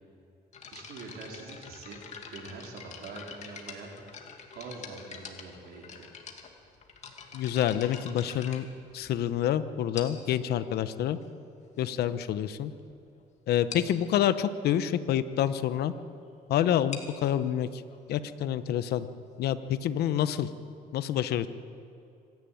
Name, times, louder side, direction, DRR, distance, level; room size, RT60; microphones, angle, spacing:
sound 1, 0.5-9.4 9.9-10.4 11.2-11.3 11.9-12.0 12.3-12.5 12.8-12.9 13.2-13.3 13.7-14.0 16.7-20.2, left 6 dB, 45° left, 2.5 m, -46 dB
voice 1, 0.7-3.9 4.5-6.1, right 3 dB, 70° right, -1 dB, 4.4 m, -44 dB
voice 2, 7.3-8.6 8.9-11.2 11.8-12.7 13.5-15.9 16.5-17.8 18.1-19.1 19.4-20.5 20.9-21.5, left 10 dB, 70° left, 12 dB, 1.0 m, -27 dB
25.5 x 11.0 x 9.4 m, 2.6 s
cardioid pair, 110°, 17 cm